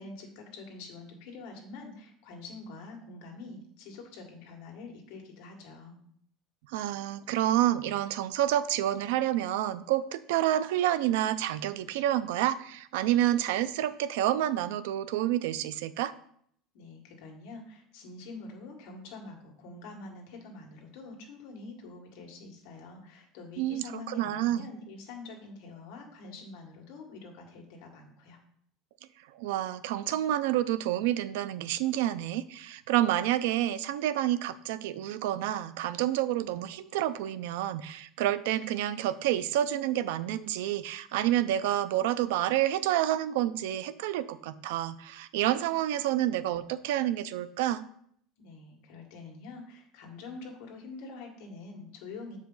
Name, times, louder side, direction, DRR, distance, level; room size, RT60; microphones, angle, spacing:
voice 1, 0.0-6.0 16.7-28.4 48.4-52.4, left 3 dB, 60° left, 1 dB, 1.7 m, -46 dB
voice 2, 6.7-16.1 23.6-24.7 29.3-47.8, right 13 dB, 80° right, 14 dB, 0.4 m, -29 dB
7.2 x 4.9 x 3.9 m, 0.65 s
cardioid pair, 180°, 0 cm